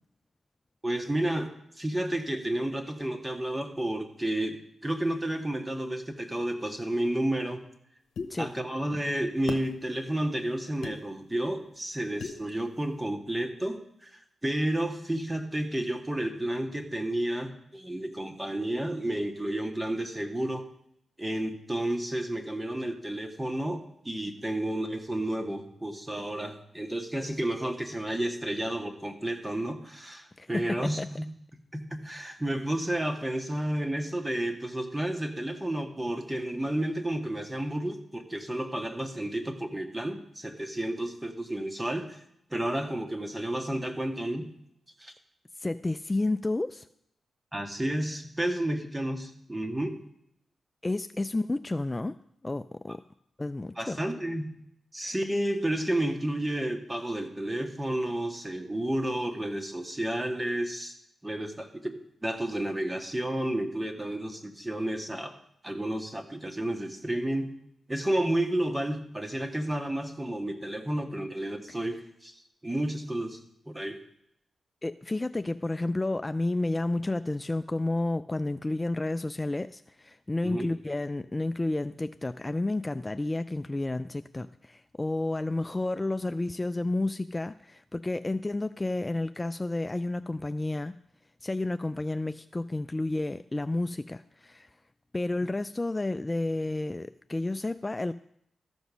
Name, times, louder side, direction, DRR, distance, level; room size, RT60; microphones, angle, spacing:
voice 1, 0.8-1.5 1.8-7.6 8.4-20.7 21.2-31.3 31.7-42.2 42.5-44.5 45.0-45.1 47.5-50.0 53.8-54.5 54.9-60.9 61.2-65.4 65.6-67.5 67.9-73.4 73.7-74.0 80.4-80.7, right 1 dB, 15° right, 5 dB, 1.6 m, -31 dB
sound 1, 8.2-8.3 9.5-9.7 10.8-11.0 12.2-12.4, left 5 dB, 80° left, 0.9 m, -35 dB
voice 2, 30.4-31.1 45.6-46.9 50.8-52.2 52.4-53.0 53.4-54.0 55.0-55.1 74.8-90.9 91.4-94.7 95.1-98.1, left 2 dB, 25° left, 11 dB, 0.3 m, -31 dB
13.5 x 5.2 x 6.2 m, 0.75 s
cardioid pair, 55°, 0 cm